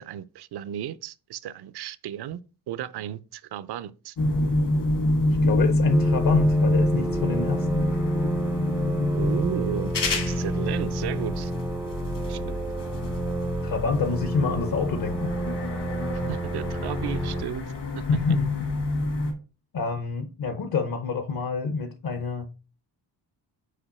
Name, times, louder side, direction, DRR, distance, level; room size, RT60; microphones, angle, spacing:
voice 1, 0.0-2.4 2.7-4.1 9.1-11.5 12.3-12.6 16.1-17.6 18.0-18.1, right 11 dB, 65° right, 0.6 m, -34 dB
sound 1, 4.2-19.3, left 1 dB, 70° left, 2.1 m, -27 dB
voice 2, 5.4-7.9 13.6-15.3 18.1-18.7 19.7-22.5, left 4 dB, 55° left, 0.8 m, -27 dB
sound 2, 5.9-17.4, right 2 dB, 5° right, 0.4 m, -31 dB
5.0 x 4.6 x 4.2 m
cardioid pair, 120°, 42 cm